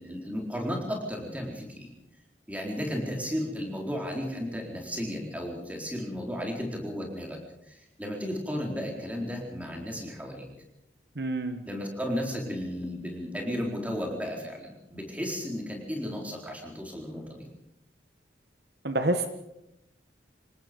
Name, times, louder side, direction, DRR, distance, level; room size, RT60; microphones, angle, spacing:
voice 1, 0.0-1.9 2.5-7.4 7.7-10.5 11.7-17.4, equal, 10° right, 0 dB, 4.1 m, -34 dB
voice 2, 11.2-11.6 18.8-19.3, right 1 dB, 60° right, 8 dB, 1.3 m, -27 dB
27.5 x 18.0 x 5.3 m, 0.85 s
head